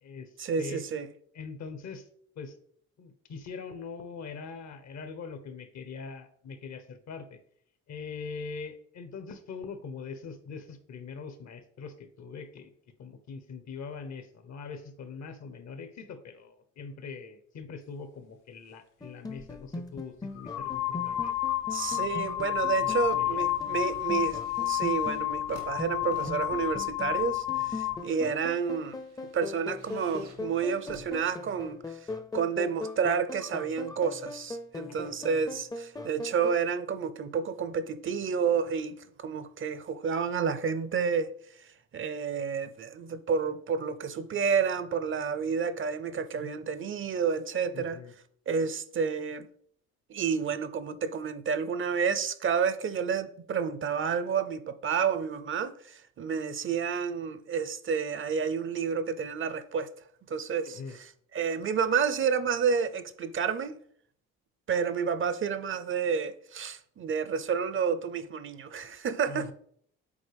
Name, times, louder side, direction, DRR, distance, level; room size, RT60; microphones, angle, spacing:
voice 1, 0.4-1.1 21.7-29.0 29.3-32.0 32.3-41.3 41.9-48.0 48.5-49.5 50.1-59.9 60.3-63.8 64.7-69.5, right 6 dB, 45° right, 0.5 m, -30 dB
voice 2, 1.3-2.0 2.4-2.5 3.0-7.4 7.9-12.7 13.0-21.3 22.8-23.4 34.9-35.2 47.7-48.1 60.6-61.0 69.3-69.5, left 5 dB, 65° left, 1.0 m, -42 dB
sound 1, 19.0-36.6, left 2 dB, 15° left, 0.5 m, -41 dB
sound 2, 19.4-19.6 20.4-28.1, left 14 dB, 80° left, 0.6 m, -30 dB
sound 3, 21.4-22.2 22.5-31.9 32.7-32.8, right 4 dB, 85° right, 1.9 m, -55 dB
7.2 x 4.1 x 3.4 m
cardioid pair, 90°, 30 cm